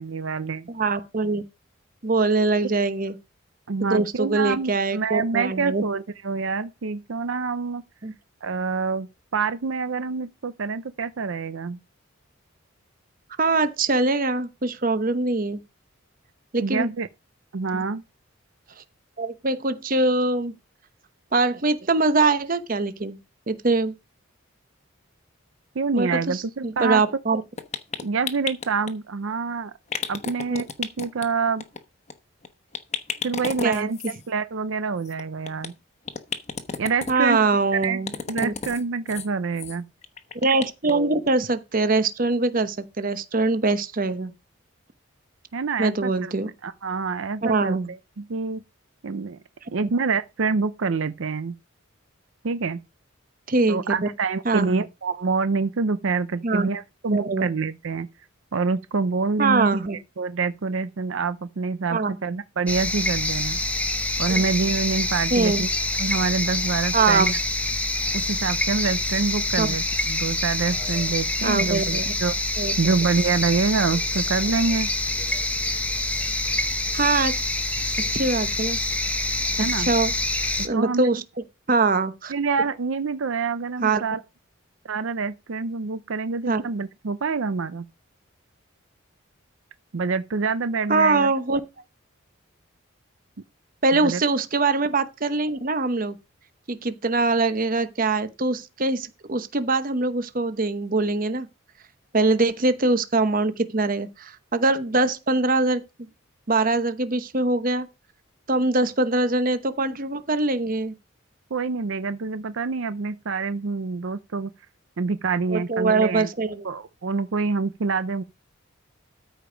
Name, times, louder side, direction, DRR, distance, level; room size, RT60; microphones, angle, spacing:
voice 1, 0.0-0.7 3.7-7.8 8.4-11.8 16.6-17.1 17.5-18.0 25.8-27.0 28.0-29.7 30.1-31.6 33.2-34.0 34.3-35.7 36.8-37.5 37.8-38.0 38.3-39.9 45.5-46.3 46.6-48.6 49.0-49.4 49.7-51.5 52.4-52.8 53.7-58.1 58.5-59.8 60.2-63.6 64.2-65.7 66.0-67.4 68.1-72.4 72.8-74.9 79.6-79.9 80.7-81.1 82.3-84.2 84.8-87.8 89.9-91.3 94.0-94.2 111.5-114.5 115.0-116.3 116.6-118.2, right 4 dB, 65° right, 0.6 m, -26 dB
voice 2, 0.7-1.4 2.0-3.1 3.8-5.8 8.0-8.1 13.4-15.6 16.5-16.9 17.7-17.8 19.2-20.5 21.3-23.2 23.5-23.9 25.9-27.4 30.5-30.7 33.6-33.9 37.1-38.1 38.4-38.5 40.4-44.3 45.8-46.5 47.4-47.9 53.5-53.8 54.4-54.8 56.4-56.7 57.1-57.5 59.4-60.0 61.9-62.1 64.3-64.4 65.3-65.6 66.9-67.3 69.6-69.7 71.4-72.0 72.6-72.7 76.9-77.4 78.1-78.8 79.6-80.1 80.6-81.2 81.7-82.3 83.8-84.0 86.5-86.6 90.9-91.6 93.8-96.2 96.7-101.5 102.1-105.8 106.5-107.9 108.5-110.9 115.5-116.6, right 3 dB, 40° right, 0.9 m, -23 dB
sound 1, 27.6-28.9 29.9-31.3 31.6-31.8 32.1-32.2 32.4-32.5 32.7-34.2 35.1-35.7 36.1-37.1 37.8-38.8 39.1-39.3 39.6-39.8 40.0-40.9 41.3-41.4 41.7-41.8, left 5 dB, 30° left, 1.0 m, -32 dB
sound 2, 62.7-80.7, left 2 dB, 5° left, 1.0 m, -26 dB
13.5 x 5.1 x 5.1 m
head